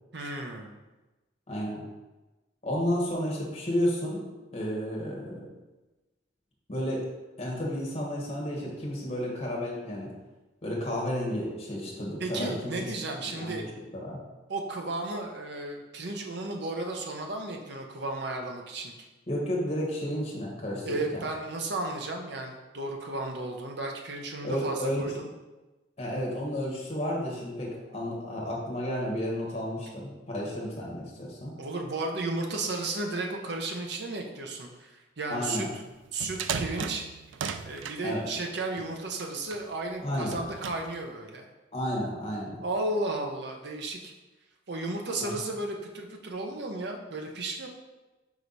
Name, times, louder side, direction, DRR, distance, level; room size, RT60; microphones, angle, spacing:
voice 1, 0.1-0.7 12.2-13.6 14.5-18.9 20.8-25.3 31.6-35.7 36.1-37.0 37.6-41.5 42.6-44.1 44.7-47.7, right 2 dB, 65° right, 2 dB, 0.9 m, -34 dB
voice 2, 1.5-1.8 2.6-4.2 4.5-5.5 6.7-7.0 7.4-10.1 10.6-12.8 13.2-13.7 13.9-14.2 19.3-21.2 24.4-25.2 26.0-31.5 35.3-35.7 38.0-38.2 40.0-40.4 41.7-42.6 45.2-45.4, equal, 35° left, -3 dB, 1.5 m, -32 dB
sound 1, 36.0-38.0 38.8-39.6 40.2-41.0, right 6 dB, 85° right, 0.4 m, -36 dB
5.0 x 4.6 x 4.1 m, 1.1 s
head